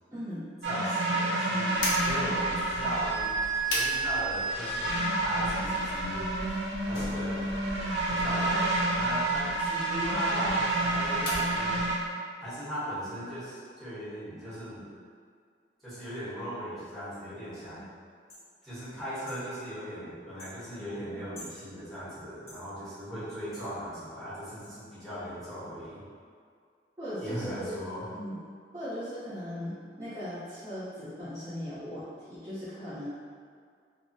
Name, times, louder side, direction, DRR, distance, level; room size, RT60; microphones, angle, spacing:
voice 1, 0.1-0.5 17.7-17.9 27.0-27.7 28.1-28.4 28.7-33.1, equal, 20° right, -15 dB, 0.7 m, -38 dB
voice 2, 0.6-6.3 6.9-7.4 8.1-11.8 12.4-14.8 15.8-17.8 18.6-26.0 27.2-28.1, equal, ahead, -13 dB, 0.9 m, -38 dB
sound 1, 0.6-12.0, right 2 dB, 80° right, 0.5 m, -29 dB
sound 2, 1.8-12.1, left 1 dB, 85° left, 0.6 m, -39 dB
sound 3, 18.3-18.5 19.3-19.4 20.4-20.6 21.3-21.6 22.5-22.6 23.5-23.7 24.6-24.7, left 1 dB, 35° left, 0.7 m, -47 dB
2.4 x 2.0 x 3.8 m, 2.1 s
head